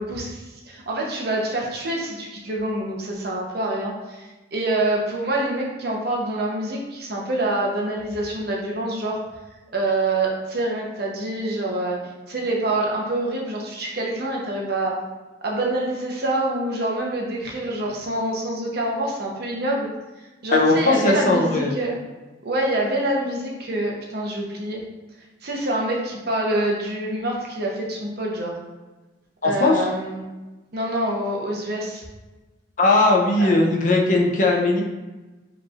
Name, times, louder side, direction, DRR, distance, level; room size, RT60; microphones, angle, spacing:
voice 1, 0.0-9.2 9.7-15.0 15.4-19.9 20.4-22.0 22.4-24.8 25.4-28.6 29.4-30.3 30.7-32.0 33.4-33.5, right 1 dB, 55° right, -2 dB, 0.8 m, -26 dB
voice 2, 20.5-21.7 29.4-29.8 32.8-34.8, left 2 dB, 40° left, 0 dB, 0.5 m, -18 dB
4.9 x 3.1 x 2.4 m, 1.2 s
head